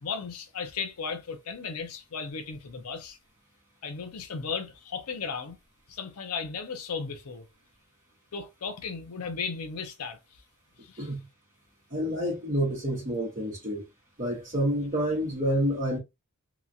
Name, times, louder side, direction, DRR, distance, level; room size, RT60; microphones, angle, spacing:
voice 1, 0.0-3.2 3.8-5.6 5.9-7.5 8.3-10.2 10.8-11.1, left 5 dB, 80° left, 0.6 m, -35 dB
voice 2, 11.9-13.9 14.2-16.0, equal, 35° right, 1.0 m, -28 dB
2.8 x 2.3 x 2.6 m
head